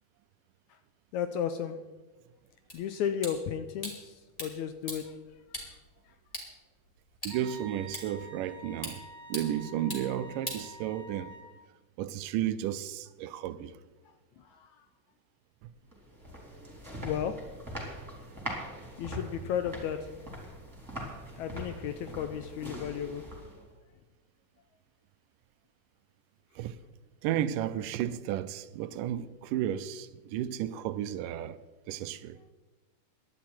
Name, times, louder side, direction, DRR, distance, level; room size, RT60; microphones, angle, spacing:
voice 1, 1.1-1.8 2.7-5.2 5.6-5.7 14.4-14.9 17.0-17.4 19.0-20.0 21.4-23.2, left 9 dB, 80° left, 1.8 m, -34 dB
sound 1, 2.7-11.3, equal, 10° left, 3.0 m, -44 dB
Wind instrument woodwind instrument, 7.3-11.6, equal, 30° right, 1.9 m, -48 dB
voice 2, 7.3-9.0 9.3-11.3 12.0-13.7 26.6-26.8 27.2-31.6 31.9-32.4, right 11 dB, 85° right, 2.2 m, -33 dB
sound 2, 15.9-23.7, equal, 5° right, 3.3 m, -42 dB
18.0 x 11.5 x 4.4 m
omnidirectional pair, 3.8 m